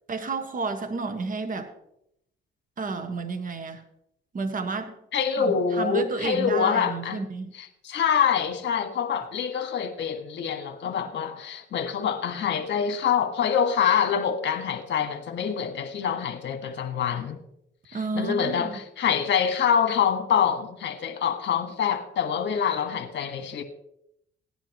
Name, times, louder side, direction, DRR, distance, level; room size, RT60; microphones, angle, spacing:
voice 1, 0.1-1.7 2.8-3.8 4.3-4.9 5.4-7.5 17.9-18.7, right 4 dB, 45° right, 1.5 m, -31 dB
voice 2, 5.1-7.2 7.5-17.4 17.9-23.6, left 7 dB, 65° left, 1.6 m, -25 dB
17.0 x 10.5 x 3.0 m
cardioid pair, 90°, 20 cm